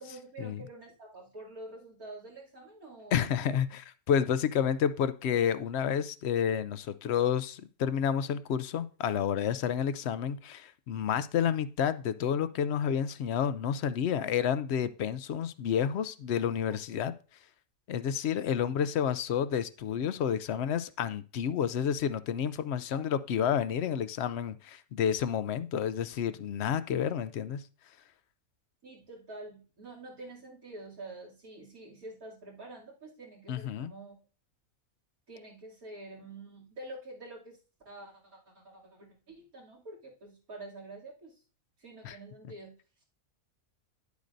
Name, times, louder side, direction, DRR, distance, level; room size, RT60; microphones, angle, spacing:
voice 1, 0.0-3.5 16.7-16.8 22.9-23.1 28.8-34.2 35.3-37.6 37.8-41.3 41.8-42.7, right 2 dB, 85° right, -5 dB, 3.3 m, -47 dB
voice 2, 3.1-17.1 17.9-27.6 33.5-33.9 42.0-42.2, left 8 dB, 65° left, 14 dB, 0.7 m, -30 dB
10.5 x 8.2 x 2.6 m, 0.36 s
omnidirectional pair, 1.5 m